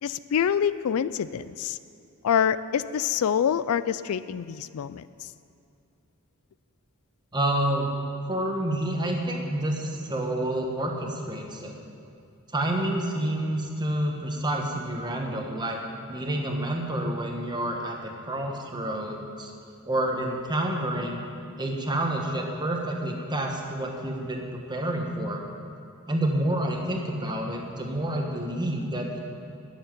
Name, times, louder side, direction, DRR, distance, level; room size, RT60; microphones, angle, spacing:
voice 1, 0.0-1.8 2.2-5.0, left 8 dB, 75° left, 15 dB, 0.3 m, -26 dB
voice 2, 7.3-7.9 8.3-11.7 12.5-15.8 16.1-19.5 19.8-21.2 21.6-25.4 26.1-29.2, right 1 dB, 20° right, 1 dB, 1.3 m, -28 dB
11.0 x 7.2 x 8.9 m, 2.6 s
head